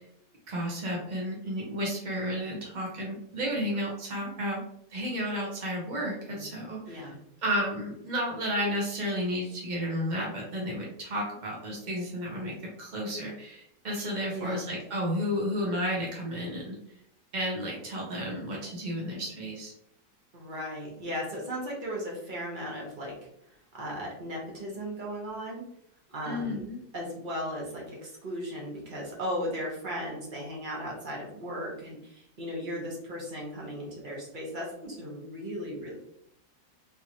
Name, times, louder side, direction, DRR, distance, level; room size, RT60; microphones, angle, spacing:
voice 1, 0.5-4.6 4.9-7.1 7.4-12.5 12.8-16.8 17.3-19.7 26.2-26.8, equal, 75° right, -2 dB, 0.4 m, -32 dB
voice 2, 14.3-14.7 20.3-23.1 23.7-25.6 26.1-26.6 26.9-35.9, equal, 35° right, -3 dB, 0.8 m, -36 dB
3.6 x 3.0 x 2.7 m, 0.76 s
omnidirectional pair, 2.0 m